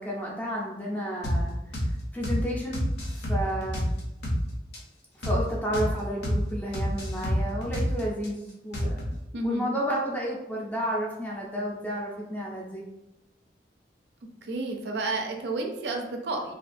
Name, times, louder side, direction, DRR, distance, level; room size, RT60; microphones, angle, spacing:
voice 1, 0.0-1.5 2.1-2.9 3.1-3.9 5.2-9.2 9.4-12.8, equal, 10° left, -3 dB, 0.4 m, -31 dB
sound 1, 1.2-1.4 1.7-1.9 2.2-2.4 2.7-4.4 4.7-4.8 5.2-5.4 5.7-5.9 6.2-6.4 6.7-8.3 8.7-9.2, equal, 60° left, 0.6 m, -28 dB
voice 2, 9.3-9.7 14.4-16.5, right 2 dB, 60° right, 2 dB, 0.4 m, -31 dB
2.4 x 2.3 x 2.5 m, 0.90 s
head